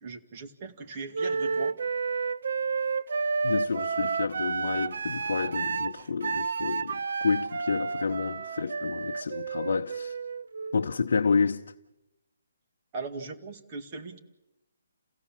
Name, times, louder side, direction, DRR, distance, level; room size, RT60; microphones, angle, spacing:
voice 1, 0.0-1.8 12.9-14.2, right 4 dB, 25° right, 2.0 m, -39 dB
Wind instrument woodwind instrument, 1.1-10.9, right 5 dB, 65° right, 0.8 m, -31 dB
voice 2, 3.4-10.2 10.7-11.7, left 5 dB, 70° left, 0.8 m, -29 dB
29.5 x 16.5 x 7.4 m
hypercardioid pair, 165°, 0 cm